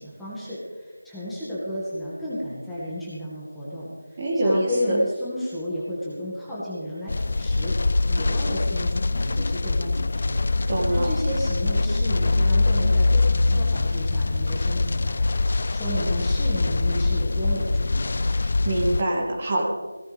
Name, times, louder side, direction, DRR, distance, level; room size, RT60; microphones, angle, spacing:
voice 1, 0.0-10.4 10.9-18.2, left 1 dB, 5° left, -11 dB, 2.0 m, -33 dB
voice 2, 4.2-5.0 10.7-11.1 18.4-19.6, right 1 dB, 30° right, -2 dB, 2.4 m, -24 dB
sound 1, 7.1-19.0, left 3 dB, 45° left, 0.4 m, -23 dB
17.5 x 15.5 x 3.5 m, 1.5 s
figure-of-eight pair, 170°, 0 cm